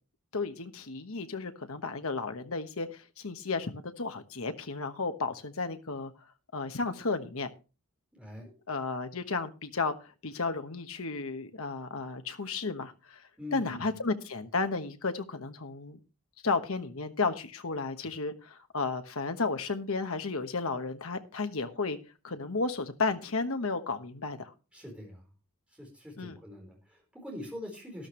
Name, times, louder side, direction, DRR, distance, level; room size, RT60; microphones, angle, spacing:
voice 1, 0.3-6.1 6.5-7.5 8.7-10.0 10.2-13.2 13.5-16.0 16.4-22.0 22.2-24.5 26.2-26.4, left 3 dB, 70° left, 1.2 m, -33 dB
voice 2, 8.1-8.5 13.4-13.9 24.7-25.3 25.8-28.1, left 1 dB, 5° right, 4.2 m, -43 dB
13.0 x 12.0 x 3.2 m
head